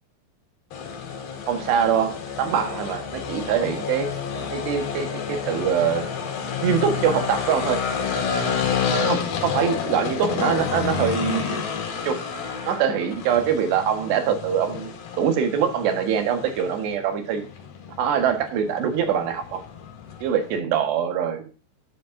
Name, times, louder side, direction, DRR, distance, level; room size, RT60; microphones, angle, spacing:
sound 1, 0.7-20.6, left 6 dB, 65° left, 3.5 m, -30 dB
voice 1, 1.5-4.1 4.5-6.1 6.6-7.8 9.1-11.6 12.1-12.2 12.7-14.9 15.2-17.4 18.0-19.6 20.2-21.5, right 8 dB, 80° right, 7 dB, 3.6 m, -23 dB
11.5 x 10.5 x 2.6 m, 0.36 s
omnidirectional pair, 4.9 m